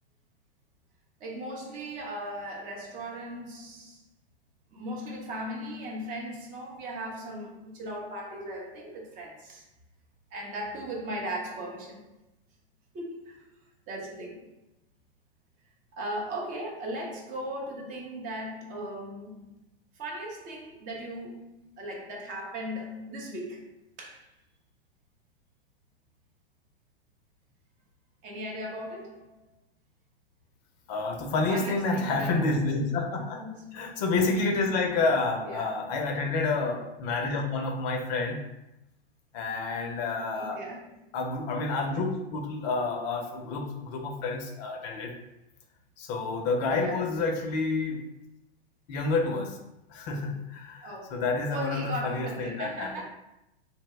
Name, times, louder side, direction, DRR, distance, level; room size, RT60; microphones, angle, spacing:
voice 1, 1.2-4.0 4.7-9.7 10.3-12.0 12.9-13.5 13.9-14.6 15.9-19.5 19.9-24.3 28.2-29.4 31.3-32.5 33.2-33.9 35.4-35.8 40.3-41.1 46.7-47.1 50.8-51.2 51.5-53.0, right 1 dB, 25° right, 0.5 m, -38 dB
voice 2, 30.9-33.4 33.7-38.4 39.3-40.6 41.1-45.1 46.0-48.0 48.9-49.6 49.9-53.0, left 3 dB, 40° left, 0.5 m, -29 dB
2.7 x 2.0 x 3.1 m
hypercardioid pair, 110°, 33 cm